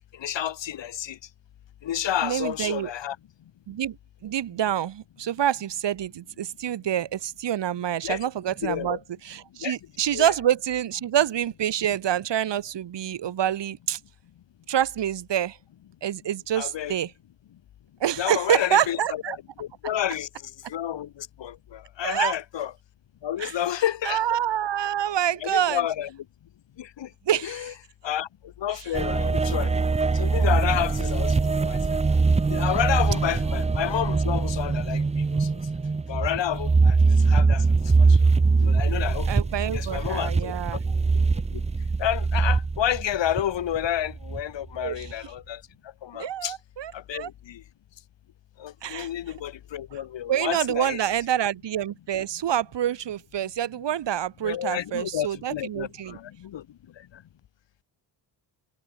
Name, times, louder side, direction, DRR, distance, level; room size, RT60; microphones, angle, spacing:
voice 1, 0.1-1.2 1.8-3.2 8.0-8.2 8.6-9.0 9.6-9.7 10.1-10.3 16.6-16.9 18.2-22.7 23.2-24.2 25.4-26.1 26.8-27.1 27.4-27.7 28.0-28.3 28.6-29.8 30.1-31.4 31.6-32.0 32.5-35.0 35.3-35.6 36.1-37.6 38.1-38.3 38.6-39.3 39.7-40.8 41.5-41.6 42.0-45.6 46.0-46.6 46.9-47.6 48.6-51.0 54.4-56.6 57.0-57.2, left 11 dB, 75° left, 7.7 m, -30 dB
voice 2, 2.2-2.9 3.7-4.0 4.2-14.0 14.7-15.6 16.0-17.1 18.0-19.4 22.0-22.4 23.4-23.6 24.0-25.8 27.3-27.7 28.7-28.9 39.3-40.8 44.8-45.1 46.1-47.3 48.8-49.1 49.9-50.0 50.3-56.2, right 10 dB, 70° right, 5.3 m, -27 dB
sound 1, 28.9-44.4 44.9-45.1, right 4 dB, 15° right, 0.7 m, -22 dB
wide cardioid pair, 175°, 44 cm